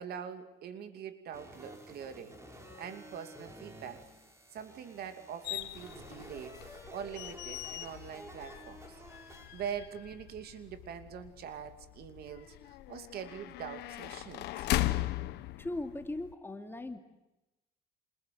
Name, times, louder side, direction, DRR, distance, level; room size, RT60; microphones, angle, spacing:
voice 1, 0.0-4.1 4.5-14.7, right 8 dB, 70° right, 8 dB, 2.7 m, -44 dB
sound 1, 1.3-9.6, right 1 dB, 15° right, 5.8 m, -52 dB
sound 2, 5.4-16.3, left 16 dB, 80° left, 1.2 m, -39 dB
voice 2, 15.6-17.0, left 2 dB, 15° left, 5 dB, 2.8 m, -38 dB
27.5 x 27.0 x 7.8 m, 0.98 s
cardioid pair, 110°, 17 cm